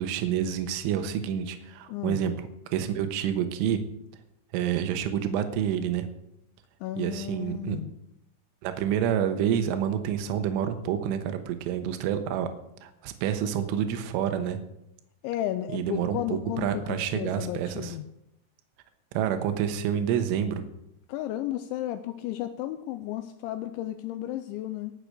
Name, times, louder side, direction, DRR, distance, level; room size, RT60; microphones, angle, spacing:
voice 1, 0.0-2.3 2.7-3.8 4.5-6.1 7.0-7.8 8.6-12.5 12.8-14.6 15.7-18.0 19.2-20.6, right 9 dB, 80° right, 8 dB, 3.6 m, -28 dB
voice 2, 1.9-2.2 6.8-7.9 15.2-18.1 21.1-24.9, left 13 dB, 80° left, 10 dB, 2.7 m, -33 dB
19.0 x 6.8 x 6.7 m, 0.82 s
omnidirectional pair, 5.8 m